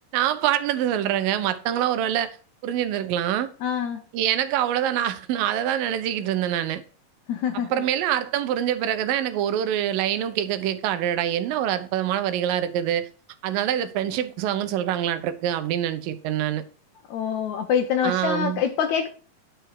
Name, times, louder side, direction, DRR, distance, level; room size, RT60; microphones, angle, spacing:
voice 1, 0.1-2.4 2.6-3.5 4.1-6.8 7.7-13.1 13.4-16.6 18.0-18.6, right 11 dB, 90° right, 2.5 m, -25 dB
voice 2, 3.6-4.0 7.3-7.7 17.1-19.1, left 8 dB, 75° left, 1.8 m, -25 dB
10.5 x 4.6 x 6.5 m
omnidirectional pair, 3.9 m